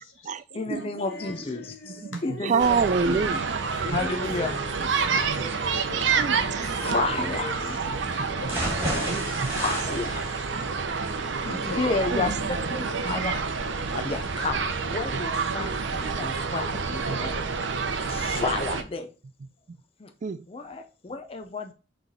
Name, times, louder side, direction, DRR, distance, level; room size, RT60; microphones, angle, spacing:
voice 1, 0.0-2.2 2.6-3.0 4.2-4.9 5.4-6.2 7.2-9.4 9.9-10.3 11.4-12.8, left 2 dB, 80° left, 1.6 m, -41 dB
voice 2, 0.5-2.8 3.1-3.2 3.8-4.6 6.6-7.5 9.6-10.0 11.4-13.5 13.9-14.6 14.9-17.3 18.0-19.1 20.0-20.1 20.5-21.7, left 3 dB, 30° left, 0.5 m, -31 dB
Female singing, 1.1-7.5, equal, 55° left, 1.2 m, -44 dB
voice 3, 1.9-3.6 3.9-4.0 4.8-5.6 6.1-6.8 9.1-9.2 10.6-10.7 12.1-12.4 13.0-13.3 15.1-15.2 16.2-16.3 17.1-17.2 18.0-18.1 19.7-19.8 20.2-20.4, right 5 dB, 40° right, 0.3 m, -28 dB
sound 1, 2.6-18.8, right 5 dB, 70° right, 0.7 m, -28 dB
sound 2, 8.5-16.4 16.8-16.9 17.3-17.4, right 1 dB, 15° right, 1.9 m, -36 dB
5.9 x 3.3 x 5.3 m
head